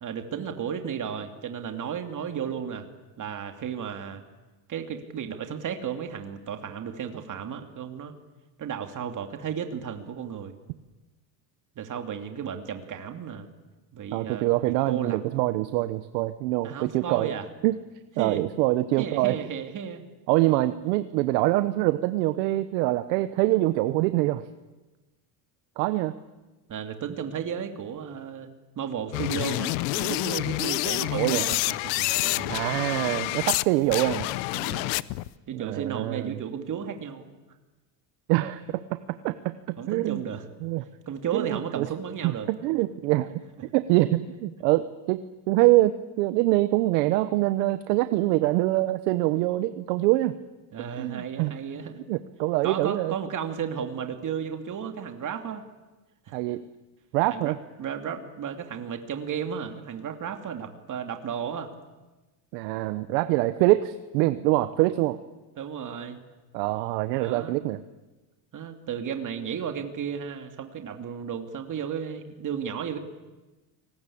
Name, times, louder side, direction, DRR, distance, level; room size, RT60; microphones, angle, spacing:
voice 1, 0.0-2.9 3.2-4.2 4.7-8.1 8.6-10.5 11.8-13.5 13.9-14.5 14.9-15.2 16.6-17.4 18.2-18.4 19.0-20.0 20.5-20.7 26.7-28.5 28.8-32.5 34.5-35.1 35.5-37.3 39.8-40.5 41.1-42.5 43.5-43.6 50.7-52.0 52.6-55.6 56.3-56.4 57.3-57.5 57.8-61.7 65.6-66.2 67.2-67.6 68.5-73.0, right 8 dB, 40° right, 6 dB, 2.6 m, -34 dB
voice 2, 14.1-17.3 17.6-17.8 18.2-19.4 20.3-24.4 25.8-26.1 31.1-31.5 32.5-34.3 35.5-36.4 38.3-39.0 39.2-40.2 40.6-40.8 41.3-41.9 42.2-43.3 43.7-50.4 51.0-51.5 52.1-53.1 56.3-56.6 57.1-57.6 62.5-65.2 66.5-67.8, right 17 dB, 90° right, 12 dB, 1.1 m, -24 dB
sound 1, 29.1-33.6 33.9-35.3, left 21 dB, 85° left, 0.8 m, -28 dB
29.5 x 20.0 x 8.6 m, 1.2 s
cardioid pair, 120°, 48 cm